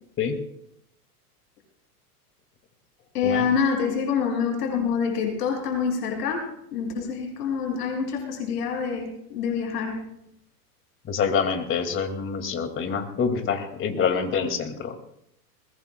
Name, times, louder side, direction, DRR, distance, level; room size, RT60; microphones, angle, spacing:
voice 1, 3.1-10.0, left 6 dB, 75° left, 1 dB, 6.9 m, -26 dB
voice 2, 11.1-15.0, left 6 dB, 25° left, 6 dB, 2.4 m, -26 dB
22.0 x 20.5 x 2.3 m, 0.76 s
hypercardioid pair, 125°, 48 cm